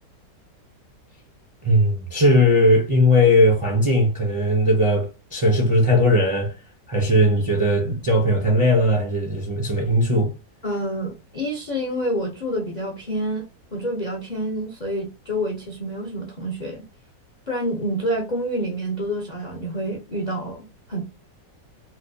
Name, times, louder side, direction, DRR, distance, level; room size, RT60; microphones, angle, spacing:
voice 1, 1.6-6.5 6.9-10.3, left 1 dB, 30° right, 0.5 m, -18 dB
voice 2, 10.6-13.4 13.7-16.8 17.5-21.0, equal, 45° left, 0.5 m, -28 dB
4.2 x 2.3 x 2.6 m
omnidirectional pair, 1.9 m